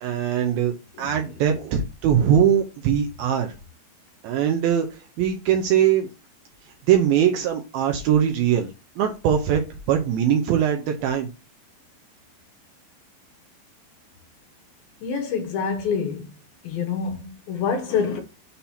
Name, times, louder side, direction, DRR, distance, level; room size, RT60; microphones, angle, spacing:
voice 1, 0.0-3.5 4.2-4.9 5.2-6.1 6.9-8.7 9.0-9.6 9.9-11.3, right 9 dB, 80° right, 2.3 m, -21 dB
voice 2, 0.9-1.3 15.0-16.3 16.6-18.2, left 6 dB, 70° left, 2.7 m, -27 dB
7.0 x 2.8 x 5.7 m
omnidirectional pair, 4.9 m